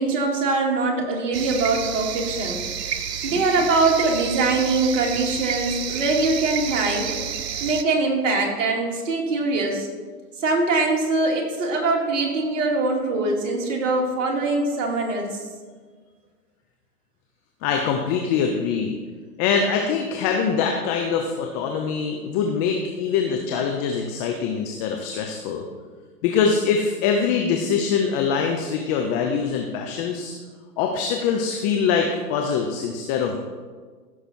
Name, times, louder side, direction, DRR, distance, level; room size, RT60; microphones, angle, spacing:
voice 1, 0.0-7.2 7.6-9.9 10.4-15.4, right 3 dB, 50° right, 0 dB, 2.7 m, -23 dB
sound 1, 1.3-7.8, right 8 dB, 85° right, 0.8 m, -30 dB
voice 2, 17.6-19.0 19.4-25.7 26.2-30.3 30.8-33.4, left 6 dB, 25° left, 3 dB, 0.8 m, -23 dB
15.5 x 6.8 x 4.5 m, 1.5 s
hypercardioid pair, 130°, 47 cm